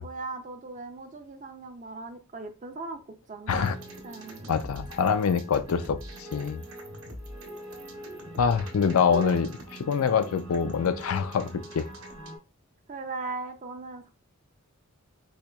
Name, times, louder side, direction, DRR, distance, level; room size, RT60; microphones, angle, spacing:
voice 1, 0.0-3.7 4.0-4.5 9.1-9.4 12.9-14.1, right 2 dB, 35° right, 0.5 m, -38 dB
sound 1, 3.5-12.4, right 1 dB, 75° right, 0.9 m, -43 dB
voice 2, 4.5-6.6 8.4-9.5 9.9-11.5 11.7-11.9, left 6 dB, 80° left, 0.4 m, -25 dB
4.4 x 2.8 x 2.2 m
head